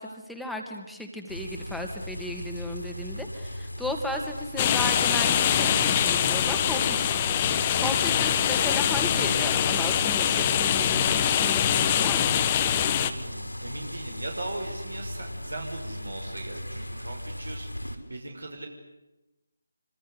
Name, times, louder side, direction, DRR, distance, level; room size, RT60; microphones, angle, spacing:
voice 1, 0.0-12.3, left 1 dB, ahead, 1 dB, 2.7 m, -35 dB
sound 1, 1.3-18.0, left 1 dB, 90° left, 5.1 m, -38 dB
sound 2, 4.6-13.1, left 9 dB, 25° left, 1.6 m, -24 dB
voice 2, 13.1-18.7, right 2 dB, 70° right, 3 dB, 6.0 m, -39 dB
27.0 x 25.5 x 8.4 m, 0.99 s
figure-of-eight pair, 155°, 0 cm